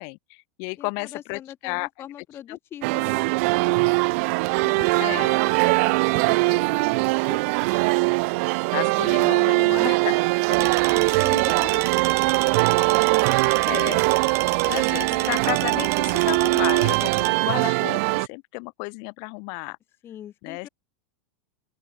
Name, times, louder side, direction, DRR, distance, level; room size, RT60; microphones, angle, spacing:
voice 1, 0.0-1.9 2.5-2.6 5.0-5.4 8.7-10.2 12.7-13.4 13.7-14.3 14.6-19.8 20.4-20.7, left 40 dB or more, 50° left, 4.4 m, -33 dB
voice 2, 0.8-3.9 4.6-7.4 10.5-11.9 20.0-20.7, left 10 dB, 25° left, 5.9 m, -42 dB
sound 1, 2.8-18.3, right 28 dB, 50° right, 0.6 m, -21 dB
sound 2, 10.5-17.3, right 14 dB, 30° right, 1.6 m, -33 dB
open air
supercardioid pair, 150°, 9 cm